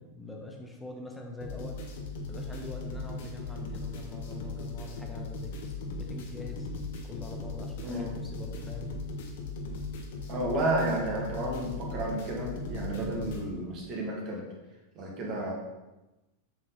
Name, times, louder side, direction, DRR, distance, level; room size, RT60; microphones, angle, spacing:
voice 1, 0.0-1.8 2.3-5.6 5.9-6.7 7.0-8.9 12.9-13.1, left 2 dB, 5° left, 0 dB, 1.3 m, -44 dB
sound 1, 1.4-13.4, left 3 dB, 55° left, 1.3 m, -38 dB
voice 2, 7.8-8.1 10.3-14.4 14.9-15.5, right 1 dB, 40° right, -1 dB, 2.1 m, -32 dB
7.7 x 6.0 x 4.2 m, 1.1 s
figure-of-eight pair, 90°, 0 cm